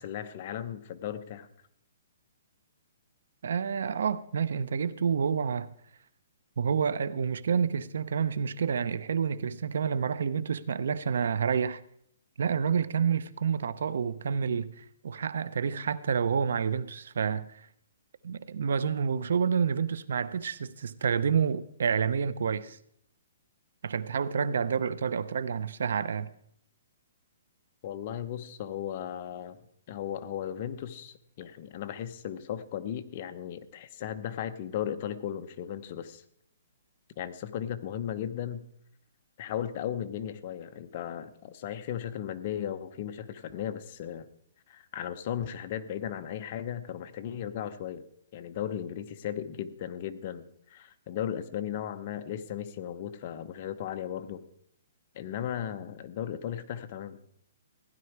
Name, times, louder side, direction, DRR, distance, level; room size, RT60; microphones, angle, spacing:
voice 1, 0.0-1.5 27.8-29.6 29.9-36.2 37.2-38.6 39.4-44.3 44.7-48.0 48.3-54.4 55.1-57.2, left 10 dB, 35° left, 0.8 m, -36 dB
voice 2, 3.4-5.7 6.6-11.8 12.4-17.7 18.2-22.8 23.8-26.3, right 6 dB, 70° right, 0.7 m, -29 dB
15.5 x 10.5 x 4.7 m
hypercardioid pair, 165°, 0 cm